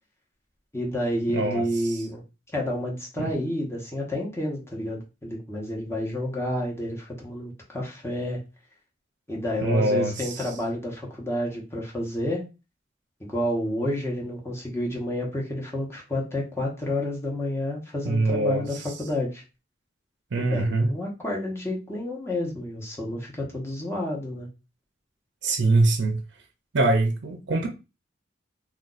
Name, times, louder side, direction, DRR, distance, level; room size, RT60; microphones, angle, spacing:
voice 1, 0.7-2.2 2.5-8.4 9.3-12.4 13.2-19.4 20.4-24.5, left 1 dB, 15° left, 1.0 m, -30 dB
voice 2, 1.3-1.6 3.2-3.3 9.6-10.3 18.1-18.6 20.3-20.9 25.4-26.2 26.7-27.7, right 2 dB, 70° right, 0.5 m, -23 dB
2.5 x 2.3 x 3.8 m
head